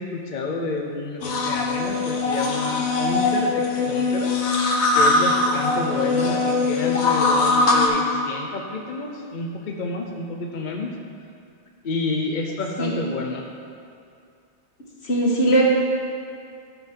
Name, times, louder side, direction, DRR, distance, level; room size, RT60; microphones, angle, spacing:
voice 1, 0.0-10.9 11.8-13.4, left 3 dB, 50° left, 1 dB, 0.8 m, -29 dB
sound 1, 1.2-7.9, left 3 dB, 90° left, 1.3 m, -21 dB
voice 2, 15.0-15.6, right 1 dB, 70° left, -3 dB, 1.8 m, -19 dB
12.5 x 5.5 x 4.5 m, 2.4 s
omnidirectional pair, 1.1 m